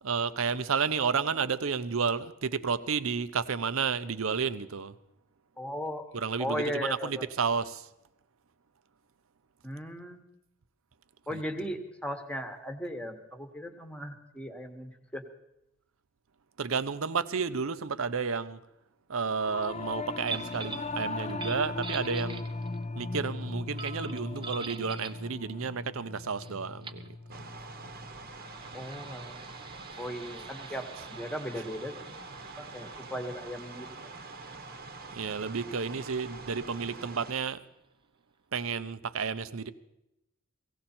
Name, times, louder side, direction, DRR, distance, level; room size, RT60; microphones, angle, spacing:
voice 1, 0.0-5.0 6.1-7.9 11.3-11.4 16.6-18.6 19.1-22.5 22.9-27.1 27.3-27.4 35.1-37.6 38.5-39.7, right 5 dB, 65° right, 0.7 m, -31 dB
voice 2, 5.6-6.1 6.4-7.3 9.6-10.2 11.3-15.2 28.7-29.4 30.0-30.8 31.1-32.2 32.7-34.1, equal, 5° left, 1.2 m, -37 dB
Singing / Musical instrument, 19.3-28.9, left 3 dB, 30° left, 0.5 m, -38 dB
sound 1, 20.3-20.9 21.3-22.8 23.8-25.2 26.4-26.5 26.8-27.1 28.1-37.4, right 4 dB, 25° right, 0.6 m, -46 dB
sound 2, 27.3-37.3, right 3 dB, 45° right, 1.1 m, -45 dB
17.0 x 17.0 x 4.4 m
head